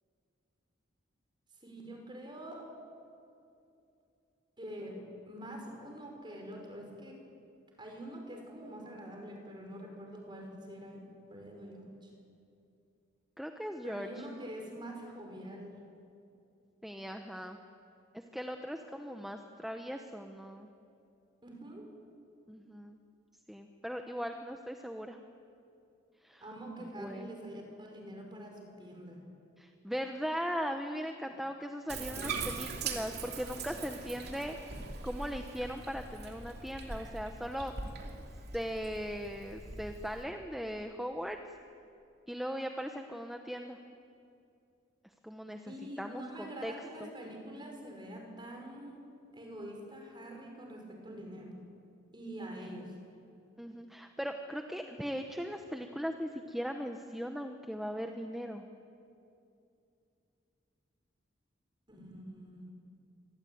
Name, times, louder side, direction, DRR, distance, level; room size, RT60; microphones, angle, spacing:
voice 1, 1.6-2.7 4.6-7.2 7.8-11.0 11.3-12.1 13.8-15.8 21.4-21.9 26.4-29.2 31.2-31.4 45.7-49.0 49.3-51.6 52.1-52.9 61.9-62.7, right 1 dB, 25° right, 2 dB, 5.5 m, -45 dB
voice 2, 13.4-14.2 16.8-17.6 18.1-20.7 22.5-23.0 23.5-25.2 26.2-26.4 27.0-27.3 29.6-34.5 35.0-37.7 38.5-41.4 42.3-43.8 45.2-45.7 46.0-46.7 47.0-47.1 53.6-58.6, equal, ahead, 4 dB, 1.0 m, -39 dB
Bathtub (filling or washing), 31.9-40.2, right 4 dB, 55° right, 3.1 m, -42 dB
26.0 x 21.5 x 9.4 m, 2.6 s
head